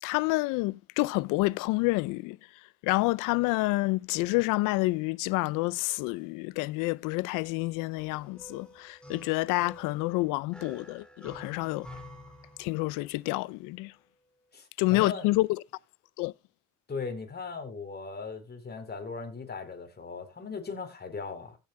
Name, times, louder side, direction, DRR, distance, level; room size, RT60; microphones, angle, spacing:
voice 1, 0.0-2.4 2.8-11.9 12.6-13.9 14.8-15.5 16.2-16.3, left 22 dB, 80° left, 0.6 m, -28 dB
sound 1, 8.0-13.2, left 1 dB, 5° left, 3.6 m, -49 dB
voice 2, 14.5-15.3 16.9-21.6, left 4 dB, 30° left, 4.0 m, -38 dB
16.5 x 7.7 x 2.3 m
supercardioid pair, 70°, 32 cm